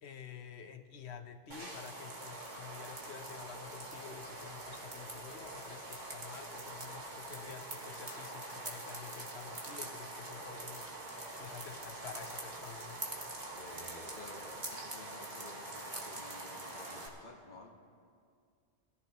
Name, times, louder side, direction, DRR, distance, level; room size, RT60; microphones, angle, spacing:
voice 1, 0.0-11.1 11.4-13.0, left 7 dB, 70° left, 7 dB, 1.1 m, -50 dB
sound 1, 1.5-17.1, right 2 dB, 40° right, 1.6 m, -44 dB
voice 2, 13.5-17.7, left 3 dB, 40° left, 0 dB, 1.4 m, -53 dB
22.0 x 14.5 x 3.0 m, 2.3 s
omnidirectional pair, 1.2 m